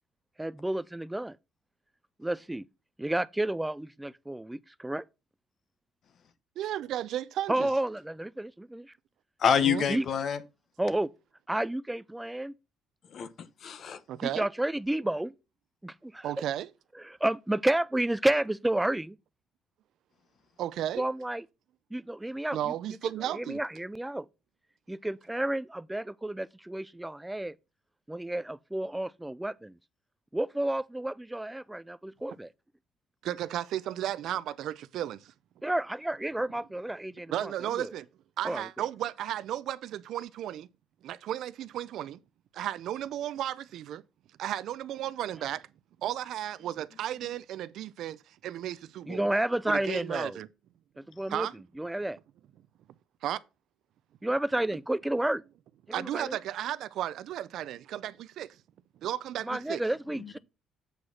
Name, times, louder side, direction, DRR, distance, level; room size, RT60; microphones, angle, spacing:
voice 1, 0.4-1.4 2.2-2.7 3.0-5.0 7.5-8.9 9.9-10.1 10.8-11.1 11.5-12.5 14.2-15.3 15.8-16.3 17.0-19.2 21.0-21.4 21.9-22.7 23.3-24.3 24.9-27.6 28.1-29.7 30.3-32.5 35.6-37.5 37.8-37.9 38.4-38.6 49.1-50.4 51.0-51.5 51.8-52.2 54.2-55.4 55.9-56.4 59.4-60.4, right 1 dB, 5° right, 0.3 m, -31 dB
voice 2, 6.6-7.7 9.6-9.9 14.1-14.5 16.2-16.7 20.6-21.0 22.5-23.6 33.2-35.3 37.3-38.1 38.4-40.7 41.0-42.2 42.5-44.0 44.4-45.7 46.0-49.3 49.7-50.5 51.3-51.5 53.2-53.4 55.9-58.6 59.0-59.8, right 12 dB, 65° right, 0.5 m, -34 dB
voice 3, 9.4-10.4 13.1-13.3 13.6-14.0 60.2-60.4, left 7 dB, 45° left, 0.9 m, -27 dB
8.0 x 4.9 x 5.6 m
cardioid pair, 145°, 0 cm